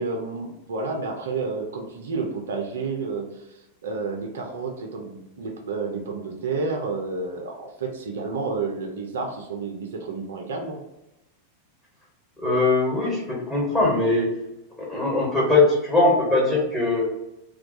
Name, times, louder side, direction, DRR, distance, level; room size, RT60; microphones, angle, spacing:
voice 1, 0.0-10.8, right 4 dB, 65° right, 2 dB, 0.4 m, -30 dB
voice 2, 12.4-14.3 14.8-17.2, left 2 dB, 15° left, -4 dB, 1.2 m, -21 dB
2.3 x 2.2 x 2.7 m, 0.90 s
figure-of-eight pair, 90°, 0 cm